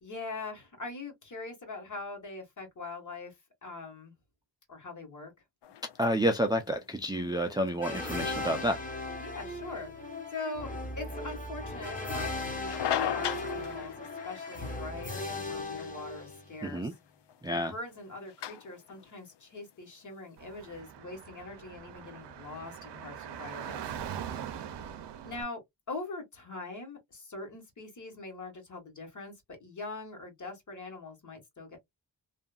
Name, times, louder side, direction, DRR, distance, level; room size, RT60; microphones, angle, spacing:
voice 1, 0.0-4.1 4.7-5.3 9.2-16.9 17.5-23.8 25.2-25.6 25.9-29.3 29.6-31.8, left 3 dB, 45° left, 1.5 m, -42 dB
sound 1, 5.6-20.8, left 10 dB, 75° left, 0.5 m, -41 dB
voice 2, 6.0-8.8 16.6-16.9 17.4-17.7, equal, 10° right, 0.4 m, -29 dB
sound 2, 7.8-16.7, left 2 dB, 20° left, 1.0 m, -37 dB
Car / Traffic noise roadway noise, 20.4-25.4, right 9 dB, 75° right, 0.6 m, -42 dB
2.7 x 2.5 x 2.3 m
wide cardioid pair, 115°, 42 cm